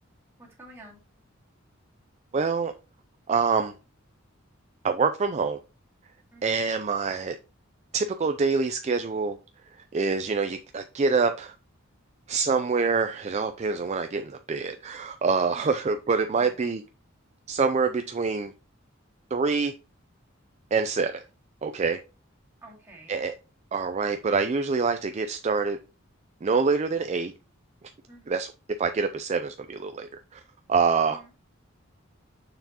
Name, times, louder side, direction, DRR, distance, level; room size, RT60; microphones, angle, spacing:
voice 1, 0.4-1.0 6.3-6.6 15.5-15.8 16.4-16.5 22.6-23.2 28.1-28.4 31.1-31.3, right 1 dB, 10° right, 2.4 m, -49 dB
voice 2, 2.3-2.7 3.3-3.7 4.8-5.6 6.4-7.4 7.9-9.4 9.9-11.5 12.3-16.8 17.5-18.5 19.3-19.7 20.7-21.2 21.6-22.0 23.1-23.3 23.7-25.8 26.4-27.3 28.3-28.5 28.8-30.4 30.7-31.2, right 4 dB, 35° right, 0.4 m, -26 dB
6.9 x 5.7 x 2.8 m
head